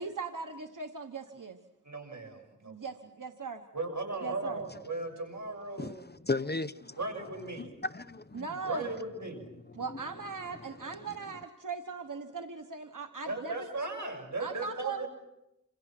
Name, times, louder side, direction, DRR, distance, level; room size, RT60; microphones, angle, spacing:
voice 1, 0.0-1.6 2.6-3.6 4.2-4.6 8.3-8.9 9.8-13.7 14.4-15.0, right 4 dB, 90° right, 1.3 m, -39 dB
voice 2, 1.8-2.9 3.7-5.9 7.0-7.7 8.6-9.5 13.3-15.1, right 2 dB, 70° right, 6.8 m, -37 dB
voice 3, 5.8-7.0 7.5-8.6 9.9-10.0, left 3 dB, 35° left, 0.9 m, -35 dB
27.5 x 27.5 x 6.1 m
wide cardioid pair, 45°, 31 cm